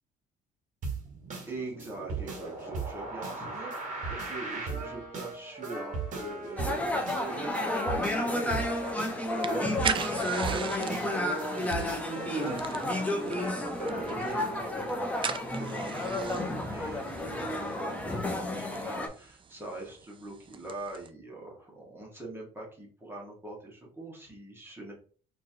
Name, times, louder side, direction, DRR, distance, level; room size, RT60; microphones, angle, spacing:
sound 1, 0.8-14.6, right 4 dB, 50° right, 1.6 m, -38 dB
voice 1, 1.5-3.7 4.1-24.9, right 2 dB, 15° right, -2 dB, 1.6 m, -42 dB
sound 2, 6.6-19.1, left 1 dB, 10° left, 0.8 m, -32 dB
sound 3, 8.6-21.1, right 7 dB, 30° right, 0.4 m, -40 dB
4.4 x 3.1 x 2.8 m, 0.43 s
cardioid pair, 110°, 17 cm